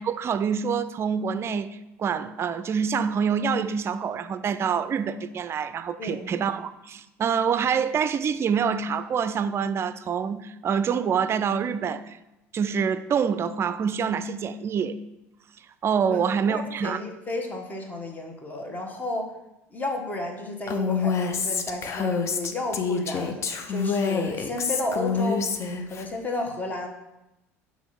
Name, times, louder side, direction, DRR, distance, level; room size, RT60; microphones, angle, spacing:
voice 1, 0.0-12.2 12.5-15.0 15.8-17.0, right 7 dB, 35° right, 0.4 m, -26 dB
voice 2, 6.0-6.3 16.1-16.2 16.4-19.3 19.7-25.4 25.9-26.9, left 2 dB, 25° left, 1.2 m, -32 dB
Female speech woman speaking, 20.7-26.1, left 5 dB, 40° left, 0.6 m, -27 dB
6.1 x 3.1 x 5.5 m
hypercardioid pair, 70°, 7 cm